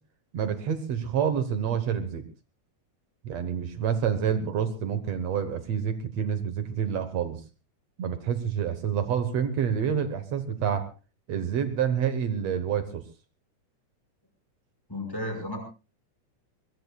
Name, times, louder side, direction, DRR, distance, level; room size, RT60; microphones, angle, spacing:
voice 1, 0.3-2.2 3.2-7.4 8.0-10.9 11.3-13.0, right 8 dB, 60° right, 10 dB, 2.1 m, -28 dB
voice 2, 14.9-15.6, left 1 dB, 5° left, 4 dB, 5.3 m, -33 dB
22.0 x 22.0 x 2.4 m, 0.32 s
omnidirectional pair, 3.7 m